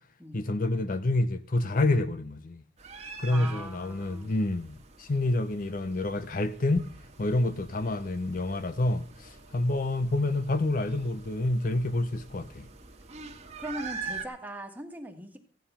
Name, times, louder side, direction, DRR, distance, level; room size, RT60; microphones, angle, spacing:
voice 1, 0.3-2.6 3.2-6.9 7.2-12.7, left 2 dB, 45° left, 0.6 m, -28 dB
sound 1, 2.8-14.3, right 5 dB, 35° right, 1.4 m, -45 dB
voice 2, 3.3-4.3 13.6-15.4, right 1 dB, 10° right, 1.5 m, -40 dB
15.0 x 9.3 x 5.6 m
head